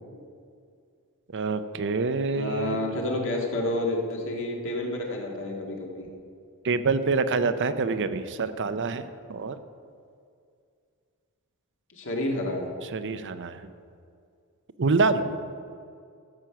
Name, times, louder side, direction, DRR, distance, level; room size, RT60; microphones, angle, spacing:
voice 1, 1.3-2.8 6.6-9.6 12.9-13.6 14.8-15.4, right 4 dB, 55° right, 12 dB, 0.6 m, -26 dB
voice 2, 2.3-6.1 11.9-12.7, left 1 dB, 60° left, 0 dB, 1.9 m, -29 dB
14.0 x 7.7 x 5.8 m, 2.3 s
head